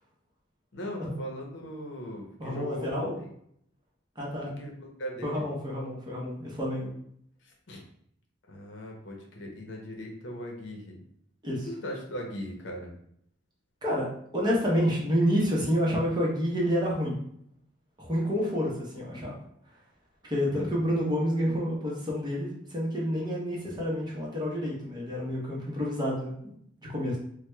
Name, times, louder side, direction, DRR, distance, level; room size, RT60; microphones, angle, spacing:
voice 1, 0.7-3.3 4.5-4.7 5.0-5.5 7.7-7.8 8.5-11.0 11.6-12.9 20.5-20.7, equal, 65° left, 0 dB, 0.7 m, -39 dB
voice 2, 2.4-3.2 4.2-4.5 5.2-6.9 11.4-11.7 13.8-14.1 14.3-17.2 18.0-19.3 20.2-26.5 26.9-27.2, equal, 20° right, -4 dB, 0.8 m, -29 dB
4.5 x 2.1 x 2.2 m, 0.69 s
head